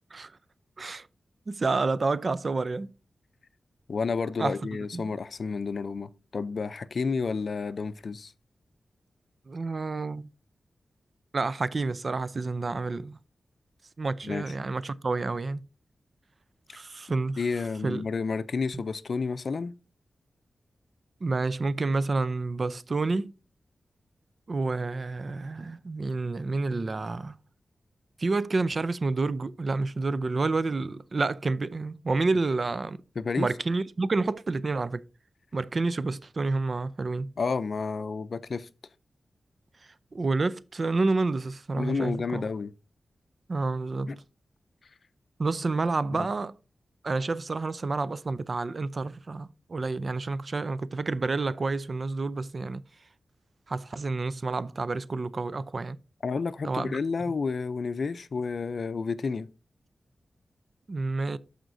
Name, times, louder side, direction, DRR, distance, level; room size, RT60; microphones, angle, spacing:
voice 1, 1.5-2.9 4.4-4.5 4.9-5.1 9.5-10.3 11.3-13.2 14.0-15.6 16.7-17.4 17.8-18.1 18.7-18.8 21.2-23.3 24.5-27.4 28.2-33.0 33.4-35.0 35.5-37.3 40.1-42.4 43.5-44.1 45.4-46.5 47.0-52.8 53.7-56.0 56.6-57.0 60.9-61.4, right 3 dB, 45° right, 0.4 m, -29 dB
voice 2, 3.9-8.3 14.2-14.5 17.4-19.7 33.2-33.5 37.4-38.7 41.8-42.7 44.1-44.2 46.1-46.3 56.2-59.5, left 4 dB, 60° left, 0.5 m, -30 dB
14.0 x 5.0 x 2.6 m
wide cardioid pair, 90°, 0 cm